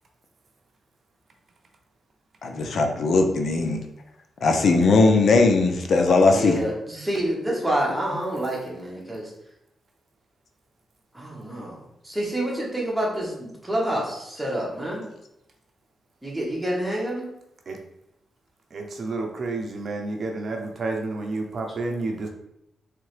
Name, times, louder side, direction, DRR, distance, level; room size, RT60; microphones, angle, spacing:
voice 1, 2.4-3.8 4.4-6.6, left 3 dB, 65° left, 4 dB, 0.5 m, -19 dB
voice 2, 6.3-9.3 11.1-15.0 16.2-17.3, right 1 dB, 10° right, -4 dB, 1.5 m, -28 dB
voice 3, 18.7-22.3, right 3 dB, 55° right, 2 dB, 0.6 m, -30 dB
3.7 x 3.3 x 3.2 m, 0.82 s
cardioid pair, 85°, 0 cm